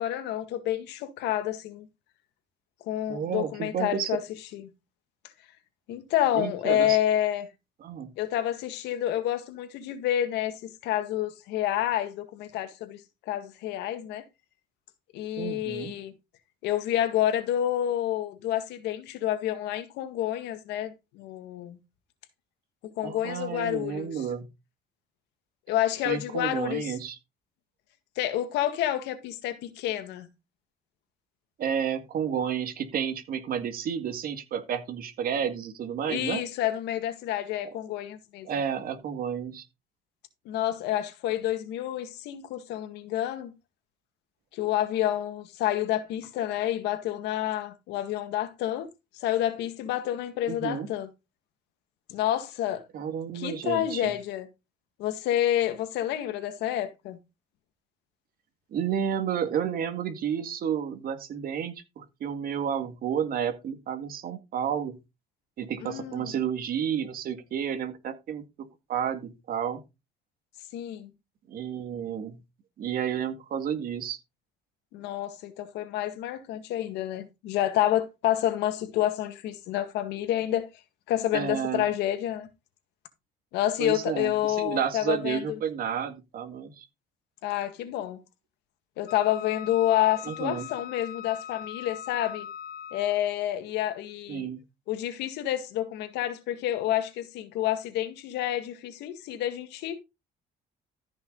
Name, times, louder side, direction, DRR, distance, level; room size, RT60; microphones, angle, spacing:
voice 1, 0.0-1.9 2.9-4.2 4.5-4.6 5.9-7.5 8.2-13.0 13.3-14.2 15.1-16.1 16.6-21.8 23.0-24.1 25.7-26.9 28.2-30.3 36.1-38.5 40.5-43.5 44.5-48.9 49.1-51.1 52.1-52.8 53.3-54.5 55.0-57.2 65.8-66.3 70.7-71.1 74.9-80.7 81.1-82.5 83.5-85.4 87.4-88.2 89.0-92.5 92.9-94.5 94.9-100.0, left 12 dB, 90° left, 1.9 m, -29 dB
voice 2, 3.1-4.2 6.3-7.0 7.8-8.1 15.4-15.9 23.0-24.5 26.1-27.2 31.6-36.4 37.6-37.8 38.4-39.7 50.5-50.9 52.9-54.1 58.7-65.0 65.6-69.8 71.5-72.4 72.8-74.2 81.3-81.9 83.8-86.9 90.3-90.7 94.3-94.6, right 8 dB, 60° right, 2.1 m, -31 dB
Wind instrument woodwind instrument, 89.1-93.3, left 9 dB, 60° left, 0.9 m, -41 dB
14.0 x 5.8 x 4.0 m
cardioid pair, 110°, 17 cm